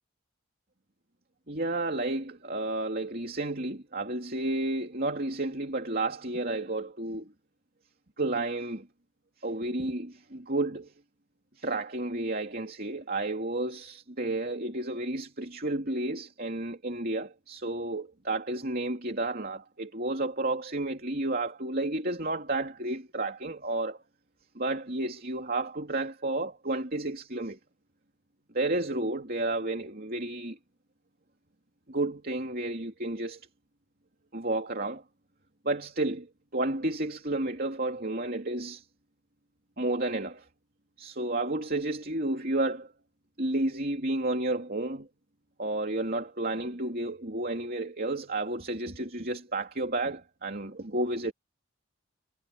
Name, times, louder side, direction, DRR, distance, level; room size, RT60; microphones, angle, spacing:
voice 1, 1.5-7.3 8.2-8.9 9.4-10.9 11.6-24.0 24.5-27.6 28.5-30.6 31.9-33.4 34.3-35.0 35.6-38.8 39.8-40.4 41.0-42.9 43.4-45.1 45.6-51.3, right 2 dB, 40° right, 3.0 m, -31 dB
head